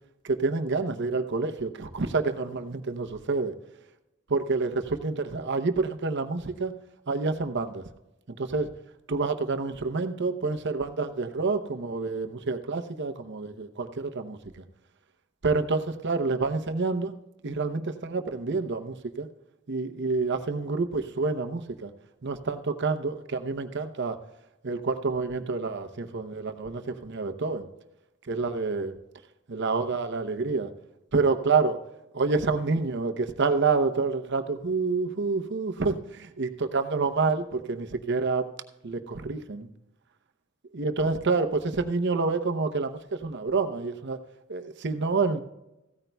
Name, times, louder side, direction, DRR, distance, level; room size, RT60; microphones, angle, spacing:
voice 1, 0.2-3.5 4.3-6.7 7.1-7.8 8.3-8.7 9.1-14.6 15.4-17.1 17.4-19.3 19.7-21.9 22.2-24.2 24.6-27.7 28.2-28.9 29.5-30.7 31.1-31.8 32.1-38.5 38.8-39.7 40.7-44.2 44.5-45.4, right 4 dB, 55° right, 8 dB, 0.8 m, -28 dB
15.5 x 13.0 x 2.3 m, 0.94 s
head